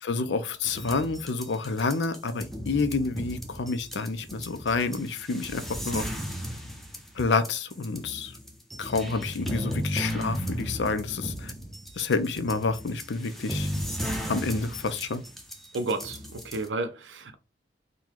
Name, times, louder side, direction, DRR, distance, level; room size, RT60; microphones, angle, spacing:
voice 1, 0.0-6.1 7.2-8.3 8.8-11.5 12.0-13.7 14.3-15.2, left 4 dB, 75° left, 0.5 m, -28 dB
sound 1, 0.5-16.7, equal, ahead, 0.7 m, -35 dB
voice 2, 15.7-17.3, right 2 dB, 85° right, 0.6 m, -32 dB
3.8 x 2.2 x 4.5 m
head